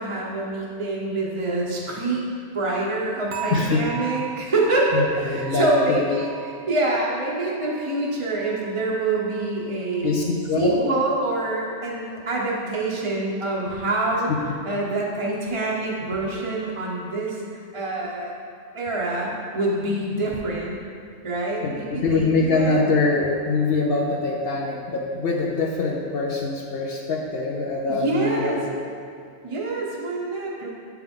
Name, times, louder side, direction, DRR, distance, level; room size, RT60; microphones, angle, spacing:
voice 1, 0.0-2.2 2.5-6.3 6.7-10.3 10.5-14.3 14.6-18.3 18.7-20.8 21.2-22.9 27.9-28.6 29.4-30.7, right 2 dB, 30° right, -4 dB, 0.7 m, -26 dB
sound 1, 3.3-10.4 10.7-11.1 11.6-11.7, right 9 dB, 80° right, 1.0 m, -39 dB
voice 2, 3.5-3.8 4.9-6.0 10.0-10.8 14.3-14.4 21.6-28.7, left 3 dB, 60° left, -1 dB, 0.7 m, -24 dB
7.7 x 4.6 x 3.6 m, 2.4 s
omnidirectional pair, 1.4 m